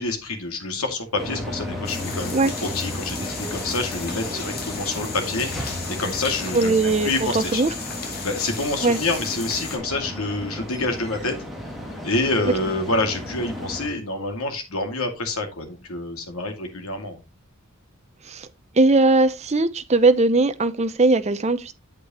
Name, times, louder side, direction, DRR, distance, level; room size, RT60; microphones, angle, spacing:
voice 1, 0.0-6.8 7.0-7.6 8.2-11.3 12.0-17.2, left 2 dB, 90° left, 2.3 m, -27 dB
sound 1, 1.2-13.9, left 1 dB, ahead, 2.3 m, -34 dB
sound 2, 1.8-9.8, left 5 dB, 45° left, 2.3 m, -35 dB
voice 2, 6.5-7.7 8.8-9.0 12.4-12.5 18.3-18.5 18.7-21.7, right 3 dB, 30° right, 0.7 m, -19 dB
8.3 x 8.1 x 3.0 m
head